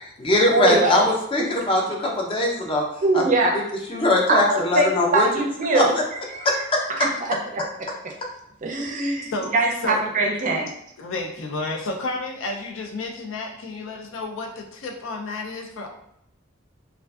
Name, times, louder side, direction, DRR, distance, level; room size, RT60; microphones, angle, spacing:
voice 1, 0.0-2.8 3.1-3.2 3.9-5.3 5.7-5.8 6.4-6.8, left 1 dB, 25° left, -1 dB, 0.5 m, -21 dB
voice 2, 0.5-1.0 1.4-1.5 3.0-3.6 4.3-6.5 7.0-7.6 8.0-8.1 8.6-10.7, right 2 dB, 40° right, 1 dB, 0.4 m, -22 dB
voice 3, 11.0-15.9, left 2 dB, 90° left, 3 dB, 0.5 m, -31 dB
2.4 x 2.3 x 2.3 m, 0.75 s
head